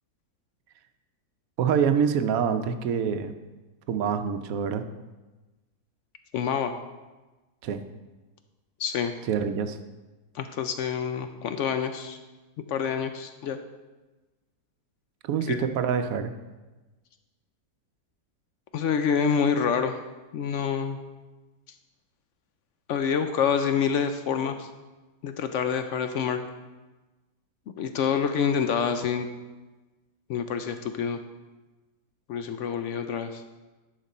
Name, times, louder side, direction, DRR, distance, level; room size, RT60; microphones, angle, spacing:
voice 1, 1.6-3.3 3.9-4.9 7.6-7.9 9.3-9.8 15.2-16.3, right 7 dB, 70° right, 9 dB, 1.0 m, -26 dB
voice 2, 6.3-6.7 8.8-9.1 10.3-12.2 12.7-13.6 15.5-15.6 18.7-20.0 20.3-21.0 22.9-24.7 25.2-26.4 27.8-29.3 30.3-31.2 32.3-33.4, left 7 dB, 70° left, 8 dB, 0.7 m, -27 dB
10.5 x 5.2 x 4.1 m, 1.2 s
omnidirectional pair, 1.7 m